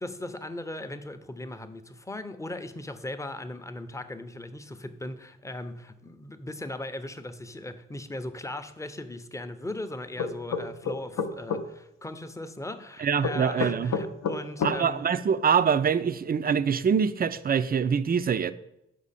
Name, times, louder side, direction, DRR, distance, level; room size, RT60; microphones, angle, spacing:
voice 1, 0.0-15.0, left 1 dB, 10° left, 0.7 m, -38 dB
sound 1, 10.2-11.6 13.2-14.8, left 5 dB, 60° left, 0.6 m, -29 dB
voice 2, 13.0-13.9 14.6-18.5, right 7 dB, 30° right, 0.5 m, -24 dB
6.3 x 4.9 x 4.1 m
hypercardioid pair, 40°, 31 cm